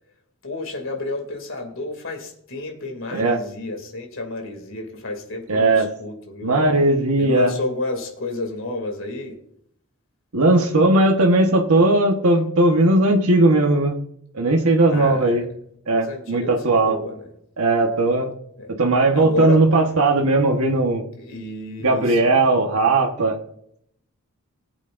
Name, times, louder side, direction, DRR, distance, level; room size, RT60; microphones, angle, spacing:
voice 1, 0.4-6.8 7.2-9.4 14.9-15.5 15.9-17.3 18.6-18.7 19.1-19.6 21.2-22.4, left 2 dB, 60° left, 3 dB, 2.6 m, -30 dB
voice 2, 5.5-5.9 6.4-7.5 10.3-14.0 14.3-15.4 15.9-17.0 17.6-18.3 18.8-21.0 21.8-23.4, right 2 dB, 85° right, 1 dB, 1.3 m, -18 dB
19.0 x 8.3 x 2.6 m, 0.69 s
head